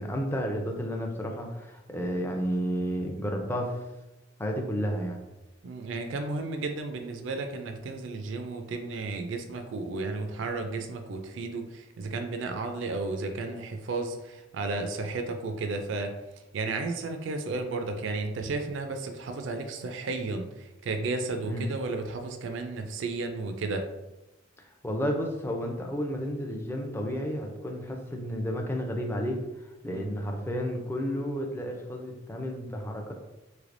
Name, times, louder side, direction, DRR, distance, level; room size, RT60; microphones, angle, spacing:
voice 1, 0.0-3.8 4.4-5.2 21.5-21.7 24.8-29.4 29.8-33.1, equal, 10° left, 2 dB, 0.4 m, -31 dB
voice 2, 5.6-23.9 29.9-30.1, right 3 dB, 70° right, 5 dB, 0.4 m, -33 dB
3.3 x 3.2 x 2.5 m, 1.0 s
head